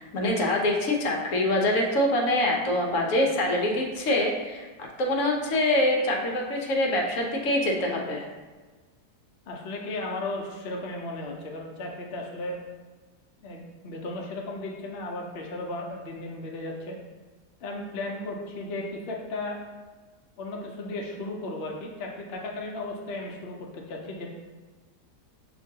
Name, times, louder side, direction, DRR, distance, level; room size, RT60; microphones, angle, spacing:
voice 1, 0.0-4.7 5.0-8.3, left 1 dB, 60° left, 0 dB, 0.9 m, -25 dB
voice 2, 9.5-12.6 13.4-17.0 17.6-19.6 20.4-24.3, left 2 dB, 85° left, 0 dB, 0.5 m, -35 dB
6.1 x 2.9 x 2.7 m, 1.3 s
omnidirectional pair, 1.8 m